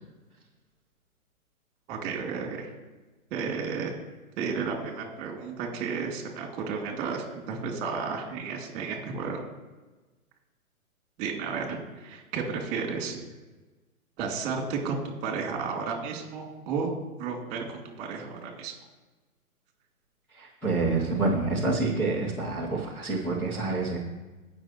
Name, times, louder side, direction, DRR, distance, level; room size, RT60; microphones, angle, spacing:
voice 1, 1.9-2.7 3.3-4.0 4.4-9.4 11.2-13.2 14.2-16.9 17.2-18.7, right 5 dB, 25° right, 1 dB, 2.8 m, -32 dB
voice 2, 20.3-24.0, right 3 dB, 5° left, -5 dB, 0.8 m, -27 dB
17.0 x 6.3 x 3.1 m, 1.2 s
hypercardioid pair, 150°, 43 cm